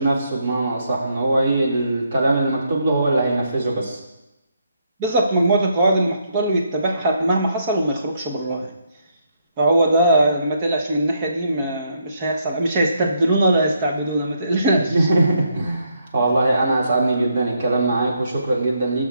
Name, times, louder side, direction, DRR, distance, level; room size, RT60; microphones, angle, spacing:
voice 1, 0.0-4.0 14.9-19.0, right 2 dB, 35° right, -3 dB, 2.0 m, -21 dB
voice 2, 5.0-8.7 9.6-14.9, right 1 dB, 20° right, 0 dB, 0.9 m, -20 dB
18.0 x 6.2 x 2.4 m, 0.97 s
hypercardioid pair, 170°, 0 cm